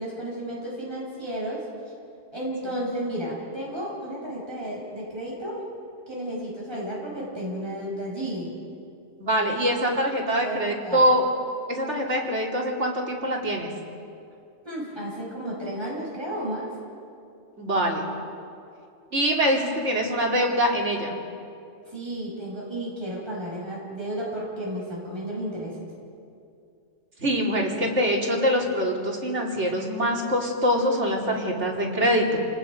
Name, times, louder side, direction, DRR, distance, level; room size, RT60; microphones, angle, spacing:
voice 1, 0.0-1.7 2.3-5.6 6.1-8.6 10.4-11.1 14.6-16.7 21.9-25.9, right 1 dB, 20° right, -5 dB, 5.5 m, -33 dB
voice 2, 9.2-11.3 11.7-13.7 17.6-18.1 19.1-21.1 27.2-32.5, equal, 60° right, -1 dB, 3.2 m, -24 dB
28.5 x 19.0 x 5.2 m, 2.5 s
omnidirectional pair, 1.4 m